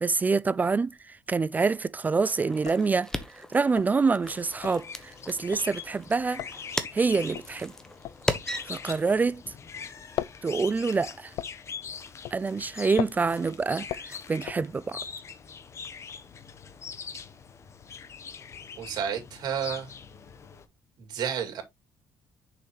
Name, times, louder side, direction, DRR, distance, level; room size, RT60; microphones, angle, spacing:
voice 1, 0.0-3.1 3.5-6.4 6.9-7.7 8.7-9.4 10.4-11.3 12.3-15.0, right 4 dB, 20° right, 0.3 m, -26 dB
sound 1, 1.3-1.8 2.1-2.2 2.5-9.6 9.8-15.2, left 13 dB, 80° left, 0.5 m, -39 dB
sound 2, 2.2-9.2, left 1 dB, 10° left, 1.1 m, -37 dB
sound 3, 4.2-20.6, left 6 dB, 40° left, 1.0 m, -43 dB
voice 2, 18.8-19.9 21.0-21.6, right 8 dB, 65° right, 2.4 m, -31 dB
6.8 x 5.7 x 3.0 m
cardioid pair, 110°, 7 cm